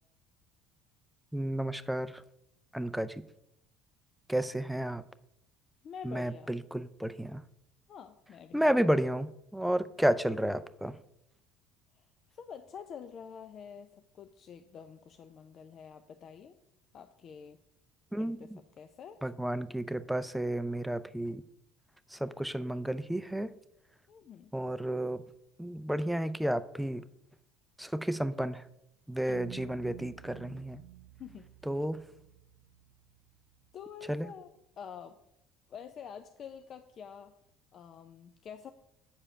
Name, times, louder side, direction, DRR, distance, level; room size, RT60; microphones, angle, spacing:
voice 1, 1.3-2.2 2.7-3.2 4.3-5.0 6.0-7.4 8.5-11.0 18.1-18.6 19.2-21.4 22.1-23.5 24.5-25.2 25.6-27.0 27.8-28.6 29.1-30.8 31.7-32.0 34.1-34.3, right 1 dB, 5° right, 13 dB, 0.5 m, -32 dB
voice 2, 5.8-6.6 7.9-8.8 11.9-12.1 12.3-16.6 16.9-17.6 18.2-18.5 18.8-19.2 24.1-24.5 31.2-31.5 33.7-34.5 34.8-35.2 35.7-37.3 37.7-38.7, left 7 dB, 50° left, 8 dB, 0.5 m, -47 dB
sound 1, 29.3-33.8, right 16 dB, 75° right, 0.4 m, -51 dB
7.5 x 4.9 x 5.5 m, 0.81 s
hypercardioid pair, 75°, 0 cm